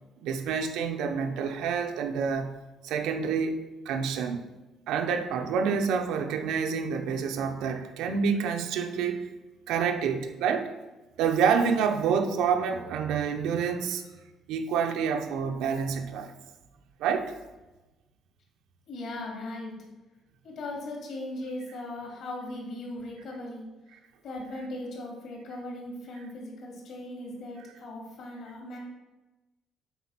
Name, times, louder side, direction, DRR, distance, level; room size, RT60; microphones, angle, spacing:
voice 1, 0.2-4.4 4.9-9.3 9.7-10.7 11.2-14.0 14.5-16.3 17.0-17.3, right 6 dB, 90° right, 6 dB, 0.8 m, -28 dB
voice 2, 18.9-19.7 20.4-23.7 24.2-28.8, left 1 dB, 55° left, -1 dB, 2.6 m, -38 dB
8.3 x 4.2 x 5.9 m, 1.1 s
cardioid pair, 165°, 0 cm